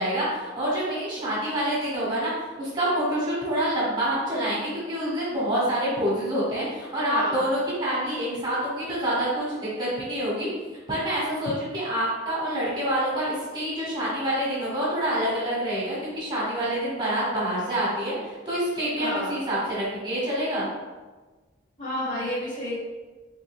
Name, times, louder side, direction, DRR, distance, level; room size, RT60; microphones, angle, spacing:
voice 1, 0.0-2.3 2.6-10.5 10.9-20.7, right 1 dB, 25° right, -7 dB, 1.1 m, -27 dB
voice 2, 7.0-7.5 19.0-19.4 21.8-22.7, left 1 dB, 40° left, -7 dB, 1.4 m, -30 dB
3.6 x 2.8 x 3.4 m, 1.3 s
head